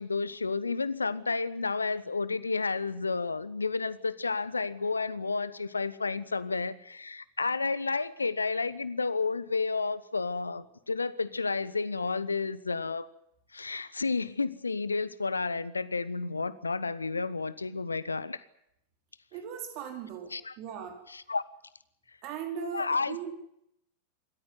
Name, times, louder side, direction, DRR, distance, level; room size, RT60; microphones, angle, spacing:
voice 1, 0.0-13.1 13.5-18.4 20.3-20.5 21.1-21.4 22.7-23.3, left 4 dB, 80° left, 18 dB, 1.0 m, -31 dB
voice 2, 19.3-21.0 22.2-23.3, right 8 dB, 40° right, 5 dB, 4.2 m, -38 dB
26.5 x 14.0 x 9.5 m, 0.76 s
figure-of-eight pair, 90°, 0 cm